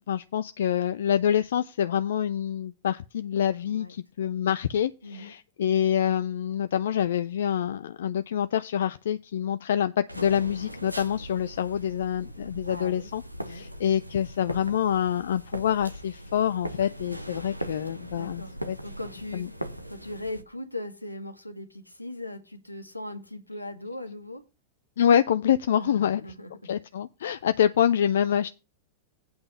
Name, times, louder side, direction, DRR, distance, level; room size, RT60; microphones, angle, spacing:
voice 1, 0.1-13.2 13.5-18.8 19.3-19.5 25.0-26.2 26.6-28.5, left 9 dB, 60° left, 0.4 m, -26 dB
voice 2, 3.6-4.5 5.0-5.3 12.6-13.1 13.4-13.6 18.1-18.5 18.8-19.5 19.9-24.4 25.7-26.7, left 1 dB, 85° left, 1.5 m, -39 dB
sound 1, 10.1-20.4, equal, 90° right, 1.0 m, -40 dB
8.8 x 5.2 x 6.9 m
figure-of-eight pair, 90°, 0 cm